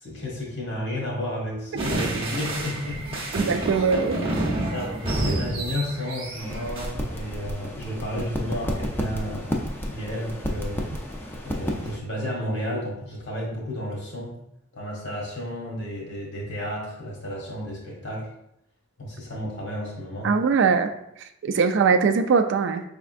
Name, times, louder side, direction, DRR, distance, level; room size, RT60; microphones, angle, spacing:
voice 1, 0.0-3.7 4.5-10.8 11.4-14.3 14.7-18.3 19.0-20.3 21.5-21.6, left 1 dB, 55° left, -4 dB, 1.5 m, -32 dB
sound 1, 1.8-6.9, right 1 dB, 25° right, 0.7 m, -29 dB
voice 2, 3.3-4.2 20.2-20.9 21.4-22.8, right 5 dB, 55° right, 8 dB, 0.3 m, -21 dB
sound 2, 6.4-12.0, equal, 10° left, 0.4 m, -31 dB
5.0 x 3.5 x 2.4 m, 0.79 s
head